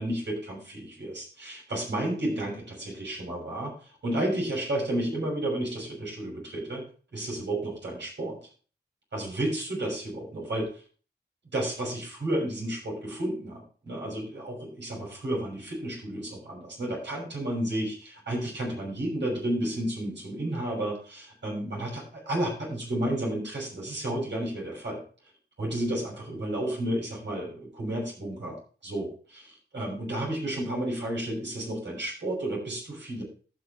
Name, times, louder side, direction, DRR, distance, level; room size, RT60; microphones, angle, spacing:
voice 1, 0.0-6.8 7.1-8.4 9.1-10.8 11.5-25.0 25.6-28.6 28.8-33.2, right 1 dB, 85° right, -2 dB, 6.3 m, -32 dB
15.5 x 5.4 x 4.4 m, 0.39 s
cardioid pair, 45°, 18 cm